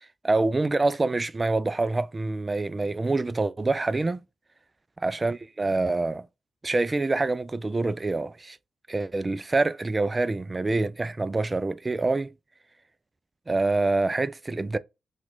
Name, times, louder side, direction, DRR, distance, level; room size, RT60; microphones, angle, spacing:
voice 1, 0.2-4.2 5.0-6.3 6.6-8.6 8.9-12.3 13.5-14.8, right 3 dB, 30° right, 0.3 m, -26 dB
2.9 x 2.4 x 3.8 m
supercardioid pair, 45°, 0 cm